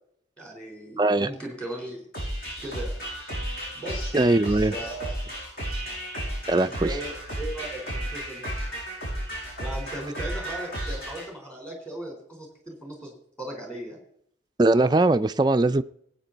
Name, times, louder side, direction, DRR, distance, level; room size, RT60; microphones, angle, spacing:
voice 1, 0.4-2.1 2.6-3.0 3.7-4.2 4.7-5.2 6.7-8.5 9.5-14.0, right 1 dB, 5° left, 3.9 m, -37 dB
voice 2, 1.0-1.3 4.1-4.7 6.5-6.9 14.6-15.8, right 2 dB, 20° right, 0.4 m, -20 dB
sound 1, 2.1-11.2, right 1 dB, 50° left, 6.9 m, -33 dB
19.5 x 9.0 x 4.0 m
head